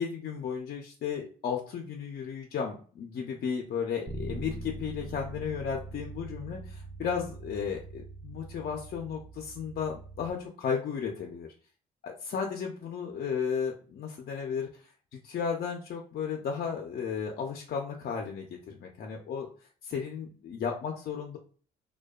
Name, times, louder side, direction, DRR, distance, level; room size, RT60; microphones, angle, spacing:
voice 1, 0.0-11.5 12.0-14.7 15.1-19.5 19.8-21.4, left 6 dB, 50° left, 1 dB, 0.4 m, -34 dB
Bass guitar, 4.1-10.3, right 2 dB, 25° right, 0.4 m, -42 dB
2.6 x 2.2 x 2.3 m, 0.42 s
cardioid pair, 90°, 20 cm